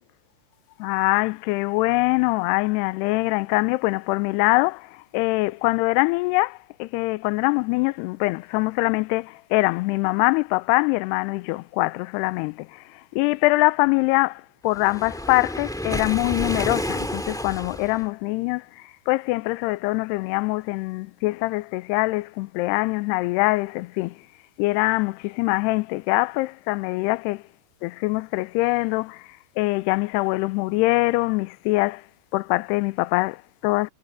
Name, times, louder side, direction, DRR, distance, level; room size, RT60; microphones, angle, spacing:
voice 1, 0.8-24.2 24.6-27.4 27.8-32.1 32.3-33.9, left 23 dB, 85° left, 2.6 m, -23 dB
Waves surf, 14.7-18.0, equal, ahead, 1.0 m, -30 dB
omnidirectional pair, 4.8 m